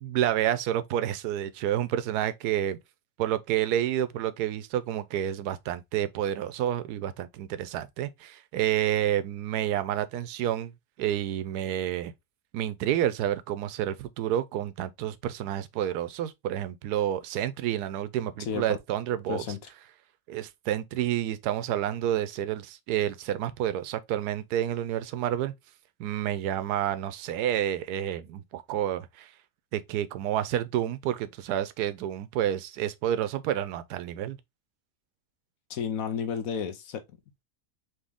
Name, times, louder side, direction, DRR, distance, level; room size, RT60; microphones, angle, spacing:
voice 1, 0.0-2.8 3.2-10.7 11.0-12.1 12.5-19.4 20.3-25.5 26.0-29.3 29.7-34.4, right 11 dB, 80° right, 1.1 m, -29 dB
voice 2, 19.3-19.6 35.7-37.0, left 7 dB, 65° left, 1.1 m, -32 dB
4.1 x 3.0 x 3.4 m
omnidirectional pair, 1.7 m